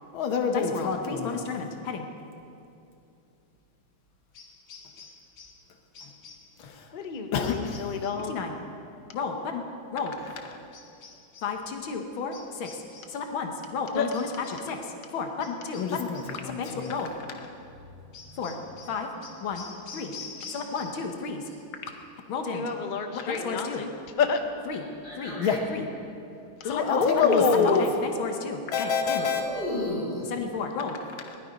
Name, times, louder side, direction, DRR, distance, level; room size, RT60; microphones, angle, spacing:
voice 1, 0.1-2.1 6.6-6.9 7.3-7.8 8.3-8.6 9.1-9.6 9.9-10.6 11.4-12.7 13.1-14.3 14.7-14.8 15.1-17.5 18.4-18.5 18.9-19.1 19.4-19.6 19.9-20.1 20.5-21.4 22.3-22.6 23.1-23.8 24.7-24.8 25.2-25.9 26.6-29.4 30.3-31.4, left 5 dB, 85° left, 4 dB, 1.8 m, -30 dB
sound 1, 4.3-5.7 5.9-6.6 7.4-8.3 10.7-11.6 12.3-13.2 14.1-14.7 15.4-16.4 16.8-17.1 18.1-21.2 21.4-21.9, left 5 dB, 65° left, 1.8 m, -47 dB
voice 2, 6.9-8.4 13.9-14.1 22.5-23.9 24.2-24.4 26.6-28.1, left 5 dB, 35° left, 5 dB, 0.8 m, -27 dB
voice 3, 18.0-18.6 18.9-19.2 20.4-20.7 25.0-25.6 29.2-30.3, left 1 dB, 25° right, -8 dB, 5.0 m, -35 dB
19.5 x 12.0 x 5.3 m, 2.6 s
omnidirectional pair, 2.2 m